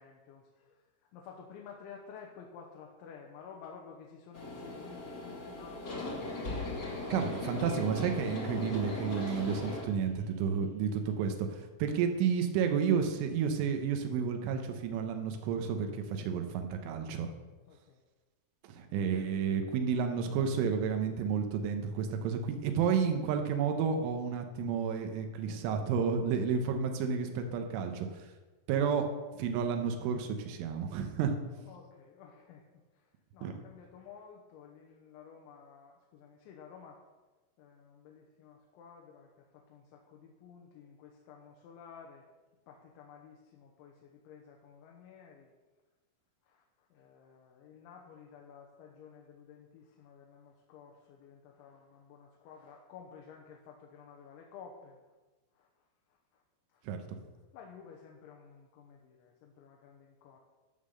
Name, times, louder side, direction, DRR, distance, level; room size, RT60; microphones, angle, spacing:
voice 1, 0.0-6.2 17.7-18.0 31.7-37.0 37.6-42.3 42.7-45.5 46.4-55.0 55.5-56.4 56.7-56.9 57.5-60.4, left 6 dB, 80° left, 0 dB, 3.3 m, -53 dB
sound 1, 4.3-9.8, left 2 dB, 50° left, 1.2 m, -38 dB
voice 2, 7.1-17.3 18.6-28.3 28.7-29.1 29.3-31.7 33.4-33.5 56.8-57.2, right 6 dB, 90° right, 5 dB, 3.4 m, -31 dB
sound 2, 9.1-11.3, right 5 dB, 70° right, 2.4 m, -53 dB
13.5 x 5.7 x 6.5 m, 1.2 s
omnidirectional pair, 5.5 m